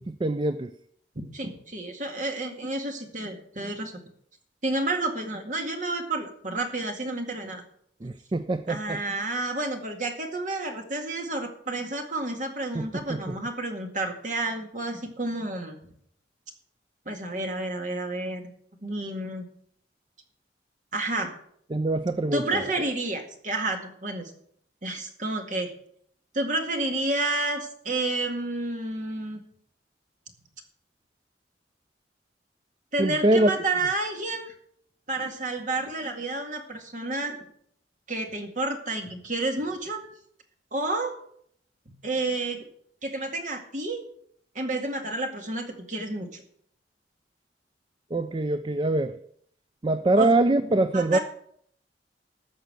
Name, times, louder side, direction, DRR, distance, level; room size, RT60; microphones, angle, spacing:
voice 1, 0.1-0.7 8.0-9.0 12.7-13.2 21.7-22.6 33.0-33.5 48.1-49.2 49.8-51.2, right 2 dB, 25° right, 0.4 m, -24 dB
voice 2, 1.3-4.0 4.6-7.6 8.7-15.8 17.1-18.4 18.8-19.4 20.9-21.3 22.3-24.3 24.8-25.7 26.3-29.4 32.9-34.5 35.1-37.4 38.1-40.0 40.7-41.2 42.0-42.7 43.0-44.0 44.6-46.4 50.2-50.3 50.9-51.2, right 2 dB, 45° right, 2.0 m, -30 dB
14.5 x 5.8 x 7.7 m
head